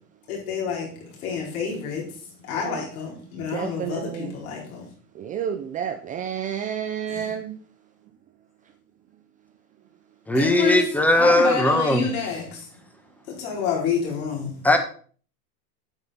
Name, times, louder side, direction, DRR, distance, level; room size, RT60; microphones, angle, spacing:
voice 1, 0.3-0.9 1.2-2.1 2.5-4.8 7.1-7.3 10.3-10.8 11.1-12.6 13.3-14.6, left 6 dB, 60° left, 4.6 m, -28 dB
voice 2, 3.4-4.4 5.1-7.5, right 8 dB, 15° right, 0.5 m, -30 dB
voice 3, 10.3-12.3 14.6-14.8, left 1 dB, 5° left, 1.2 m, -19 dB
9.4 x 8.0 x 4.1 m
hypercardioid pair, 130°, 48 cm